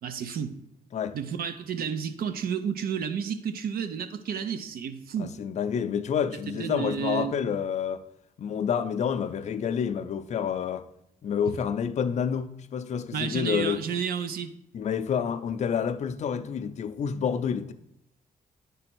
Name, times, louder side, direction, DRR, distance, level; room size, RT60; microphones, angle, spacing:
voice 1, 0.0-0.5 1.1-5.3 6.5-7.4 11.5-11.6 13.1-14.5, right 7 dB, 80° right, 0.6 m, -31 dB
voice 2, 5.2-8.0 8.4-10.8 11.2-13.8 14.7-17.7, left 7 dB, 50° left, 0.5 m, -28 dB
9.7 x 3.4 x 6.0 m
wide cardioid pair, 160°, 15 cm